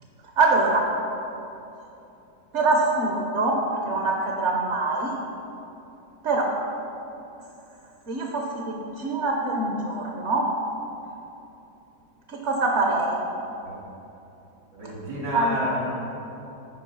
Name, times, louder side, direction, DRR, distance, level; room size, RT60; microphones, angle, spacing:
voice 1, 0.4-0.8 2.5-3.6 3.8-5.1 6.2-6.5 8.1-10.4 12.4-13.2 15.3-15.7, right 2 dB, 55° right, 0 dB, 0.9 m, -24 dB
voice 2, 14.7-15.9, equal, 80° right, -5 dB, 2.9 m, -30 dB
8.2 x 5.1 x 5.5 m, 2.9 s
omnidirectional pair, 1.8 m